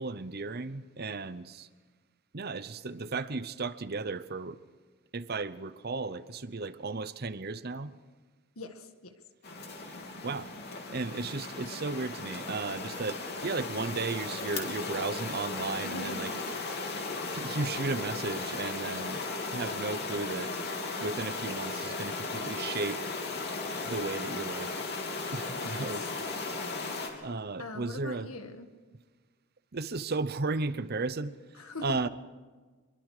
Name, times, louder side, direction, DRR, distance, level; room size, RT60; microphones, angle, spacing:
voice 1, 0.0-1.7 2.3-4.6 5.1-7.9 9.8-9.9 10.2-10.5 10.9-16.3 17.3-19.2 19.5-20.5 21.0-23.0 23.8-24.8 25.3-26.1 27.2-28.3 29.7-31.3 31.8-32.1, right 3 dB, 45° right, 14 dB, 0.8 m, -34 dB
voice 2, 8.6-9.1 15.8-16.3 25.6-25.9 26.2-27.0 27.6-28.7 31.6-32.0, left 2 dB, 80° left, 7 dB, 1.9 m, -43 dB
sound 1, 9.4-27.1, left 3 dB, 50° left, 3.2 m, -36 dB
25.0 x 22.5 x 5.0 m, 1.4 s
head